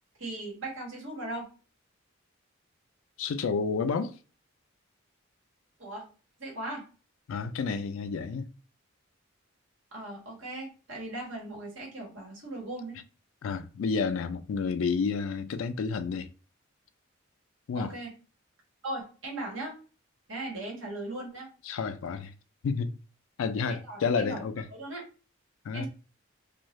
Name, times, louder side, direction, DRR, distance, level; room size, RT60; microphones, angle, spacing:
voice 1, 0.2-1.5 5.8-6.1 6.4-6.8 9.9-13.0 17.7-18.1 18.8-19.7 20.3-21.5 23.7-25.0 25.7-25.9, right 2 dB, 70° right, 1.3 m, -38 dB
voice 2, 3.2-4.1 7.3-8.5 13.4-16.3 17.7-17.9 21.6-22.3 22.6-22.9 23.4-24.7 25.6-25.9, left 5 dB, 75° left, 0.3 m, -30 dB
2.6 x 2.3 x 3.0 m
head